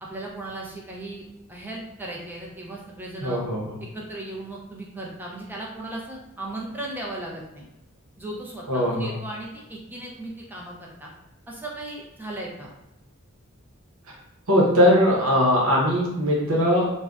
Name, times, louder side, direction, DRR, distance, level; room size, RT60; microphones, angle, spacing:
voice 1, 0.0-1.2 1.5-3.4 3.8-7.7 8.2-11.1 11.5-12.7, right 2 dB, 10° right, -3 dB, 0.5 m, -36 dB
voice 2, 3.2-3.8 8.7-9.1 14.5-16.9, equal, 80° right, -3 dB, 0.8 m, -20 dB
2.5 x 2.1 x 3.4 m, 0.95 s
head